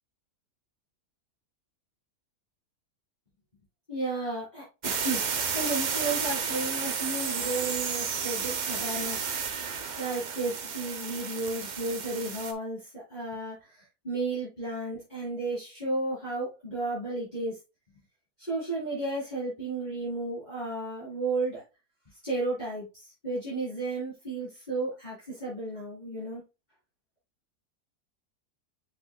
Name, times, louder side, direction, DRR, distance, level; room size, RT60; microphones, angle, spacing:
voice 1, 3.9-5.2 5.5-9.3 10.0-17.6 18.4-21.6 22.2-26.4, right 2 dB, 25° left, -11 dB, 3.9 m, -33 dB
sound 1, 4.8-12.5, right 6 dB, 55° right, 0.4 m, -32 dB
7.2 x 5.9 x 2.3 m, 0.27 s
omnidirectional pair, 1.7 m